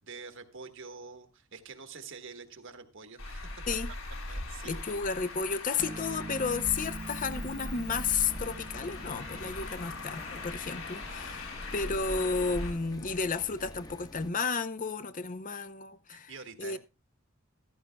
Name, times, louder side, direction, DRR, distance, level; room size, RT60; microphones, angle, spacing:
voice 1, 0.0-3.6 4.3-4.7 16.1-16.8, right 4 dB, 60° right, 1.5 m, -46 dB
Traffic noise roadway noise, 3.2-12.7, left 2 dB, 85° left, 3.9 m, -40 dB
voice 2, 4.6-16.3 16.6-16.8, left 5 dB, 40° left, 0.7 m, -32 dB
sound 1, 5.8-12.6, right 2 dB, 40° right, 0.7 m, -45 dB
sound 2, 7.3-14.3, left 1 dB, 20° left, 1.1 m, -48 dB
14.5 x 13.5 x 2.3 m
head